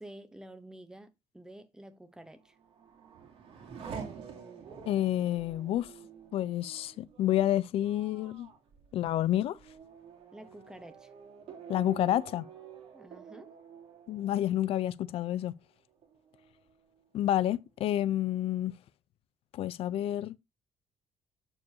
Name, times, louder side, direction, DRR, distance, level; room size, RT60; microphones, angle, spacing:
voice 1, 0.0-2.6 10.3-11.1 12.9-13.5, right 1 dB, 5° right, 0.8 m, -49 dB
Race car auto racing / Accelerating revving vroom, 2.4-15.6 16.0-16.7, right 6 dB, 55° right, 2.7 m, -49 dB
voice 2, 4.9-5.9 6.3-8.5 8.9-9.6 11.7-12.5 14.1-15.6 17.1-18.8 19.5-20.3, left 12 dB, 55° left, 0.5 m, -29 dB
8.2 x 7.1 x 2.7 m
cardioid pair, 165°, 12 cm